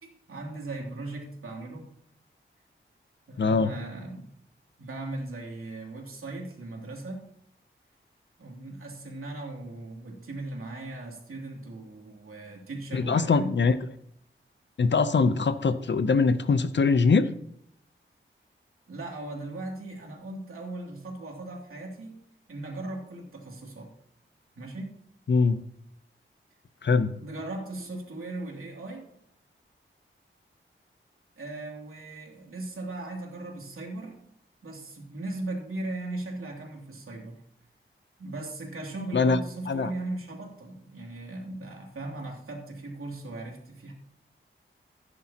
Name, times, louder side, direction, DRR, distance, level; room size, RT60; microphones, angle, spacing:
voice 1, 0.0-1.9 3.3-4.2 4.8-7.2 8.4-13.6 18.9-22.2 22.5-23.9 24.6-25.0 27.1-29.0 31.4-34.2 34.6-37.4 38.2-43.9, right 2 dB, 85° right, 0 dB, 2.8 m, -38 dB
voice 2, 3.4-3.7 12.9-13.7 14.8-17.3 25.3-25.6 26.8-27.1 39.1-39.4 39.7-39.9, left 4 dB, 60° left, 12 dB, 0.7 m, -22 dB
16.0 x 10.0 x 2.9 m, 0.71 s
wide cardioid pair, 125°, 21 cm